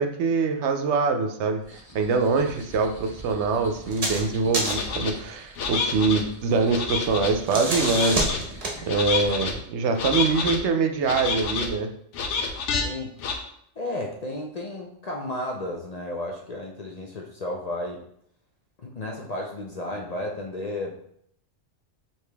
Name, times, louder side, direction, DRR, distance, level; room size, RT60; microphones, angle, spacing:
voice 1, 0.0-8.3 8.8-11.9, right 4 dB, 75° right, 6 dB, 0.9 m, -24 dB
sound 1, 1.6-9.4, right 1 dB, 30° left, 1.9 m, -45 dB
sound 2, 3.8-4.3 4.5-5.0 7.2-8.8, right 2 dB, 35° right, 0.9 m, -27 dB
sound 3, 4.6-5.1 5.6-6.2 6.7-7.3 7.8-8.4 8.9-9.5 10.0-10.6 11.0-11.7 12.1-12.8 13.2-13.3, left 5 dB, 90° left, 1.0 m, -28 dB
voice 2, 12.8-13.1 13.8-18.0 18.8-20.9, left 1 dB, 45° left, 0 dB, 0.5 m, -33 dB
4.9 x 2.9 x 3.3 m, 0.68 s
omnidirectional pair, 1.2 m